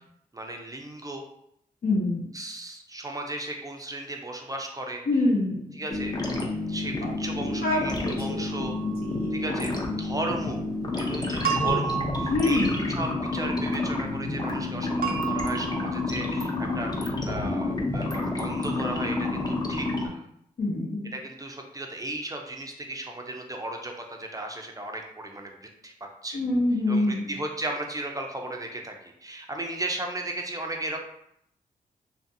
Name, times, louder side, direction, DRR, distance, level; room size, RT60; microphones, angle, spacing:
voice 1, 0.3-1.2 2.3-5.0 5.7-6.1 6.7-8.7 9.3-9.7 10.0-10.6 11.0-20.2 21.1-25.9 26.2-26.4 26.9-31.0, right 1 dB, 20° right, 2 dB, 0.5 m, -35 dB
voice 2, 1.8-2.3 5.1-5.6 7.0-7.1 7.6-9.4 11.6-11.8 12.3-12.8 20.6-21.1 26.3-27.3, left 2 dB, 70° left, -2 dB, 0.9 m, -26 dB
sound 1, 5.9-20.1, left 2 dB, 25° left, 0.6 m, -29 dB
sound 2, 8.5-9.0 11.4-13.1 15.0-16.2, right 8 dB, 70° right, 0.6 m, -31 dB
2.5 x 2.4 x 2.7 m, 0.74 s
cardioid pair, 55°, 16 cm